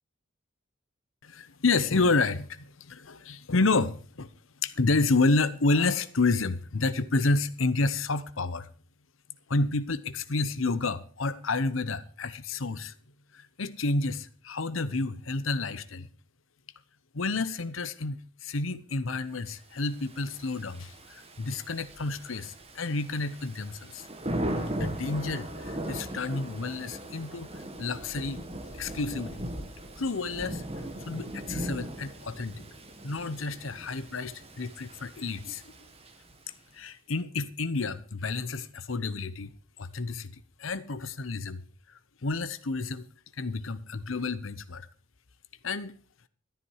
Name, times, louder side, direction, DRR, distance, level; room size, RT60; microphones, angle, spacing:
voice 1, 1.2-4.3 4.6-8.7 9.5-12.9 13.3-16.1 17.1-24.1 24.7-28.4 28.7-29.4 30.0-30.6 31.1-32.6 33.0-35.6 36.7-39.5 39.8-41.6 41.9-43.1 43.4-44.9 45.6-45.9, left 3 dB, 90° left, 0.9 m, -30 dB
Thunder / Rain, 19.9-36.5, right 1 dB, 30° right, 1.8 m, -39 dB
13.0 x 11.0 x 4.8 m
head